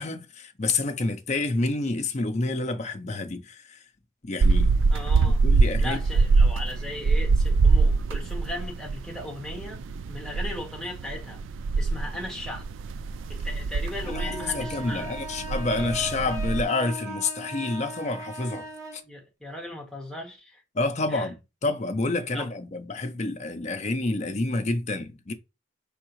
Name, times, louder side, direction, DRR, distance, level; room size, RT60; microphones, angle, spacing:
voice 1, 0.0-3.8 4.2-4.8 5.4-6.0 14.1-18.7 18.9-19.0 20.7-25.3, left 2 dB, 35° left, 0.6 m, -28 dB
sound 1, 4.4-16.6, right 4 dB, 75° right, 0.3 m, -24 dB
voice 2, 4.9-5.4 5.8-9.8 10.1-11.4 11.8-12.7 13.3-15.2 19.0-20.6 21.1-21.3 22.3-22.5, left 1 dB, ahead, 1.3 m, -37 dB
sound 2, 14.0-19.0, equal, 15° right, 0.9 m, -38 dB
4.6 x 3.5 x 3.0 m
head